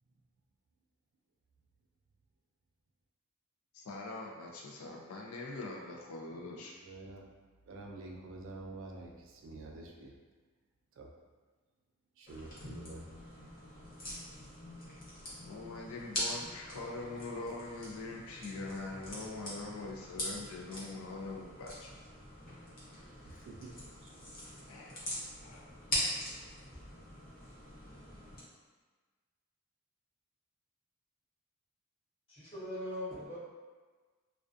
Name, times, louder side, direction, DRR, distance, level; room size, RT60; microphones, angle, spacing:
voice 1, 3.7-6.7 15.4-21.9 23.3-23.4 24.7-25.6, left 3 dB, 75° left, -1 dB, 0.4 m, -43 dB
voice 2, 6.7-7.3 7.7-10.2 11.0-11.1 12.2-13.1 23.2-23.7 24.0-24.1, right 2 dB, 60° right, 0 dB, 0.3 m, -48 dB
sound 1, 12.3-28.4, equal, 40° left, 0.7 m, -43 dB
voice 3, 32.3-33.4, left 1 dB, 25° left, -11 dB, 1.1 m, -40 dB
2.3 x 2.3 x 2.5 m, 1.4 s
head